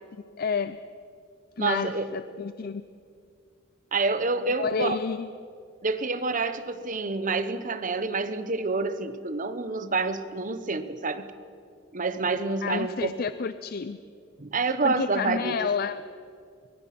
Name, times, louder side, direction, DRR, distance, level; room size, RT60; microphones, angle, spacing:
voice 1, 0.4-0.8 1.6-2.8 4.6-5.3 12.6-14.0 14.8-16.0, left 5 dB, 50° left, 13 dB, 0.5 m, -30 dB
voice 2, 1.6-2.1 3.9-5.0 5.8-11.3 11.9-13.1 14.4-15.7, right 3 dB, 40° right, 11 dB, 1.0 m, -28 dB
23.5 x 22.0 x 6.0 m, 2.3 s
head